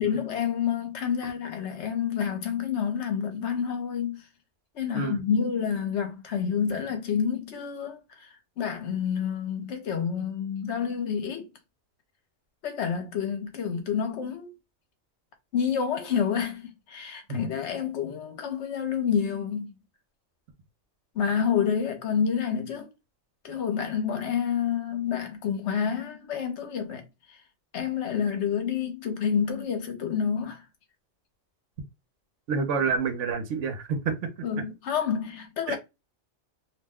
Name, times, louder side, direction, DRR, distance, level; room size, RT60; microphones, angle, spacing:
voice 1, 0.0-4.2 4.7-8.3 8.6-11.5 12.6-14.5 15.5-19.8 21.1-22.9 23.4-27.0 27.7-30.6 34.4-35.8, left 7 dB, 65° left, 1.0 m, -28 dB
voice 2, 32.5-34.3 35.7-35.8, right 5 dB, 75° right, 1.1 m, -28 dB
2.6 x 2.1 x 3.5 m
omnidirectional pair, 1.3 m